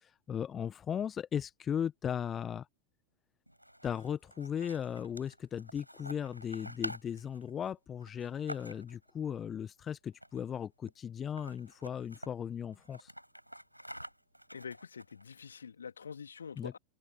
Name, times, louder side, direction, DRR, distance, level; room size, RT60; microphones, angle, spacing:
voice 1, 0.0-2.7 3.8-13.1 16.6-16.8, left 8 dB, 25° left, 1.4 m, -37 dB
sound 1, 3.5-9.1 10.1-10.6 10.9-11.0 11.2-12.3 12.7-15.4, equal, 90° right, 5.0 m, -48 dB
voice 2, 14.5-16.8, left 6 dB, 70° left, 2.6 m, -45 dB
open air
figure-of-eight pair, 90°, 0 cm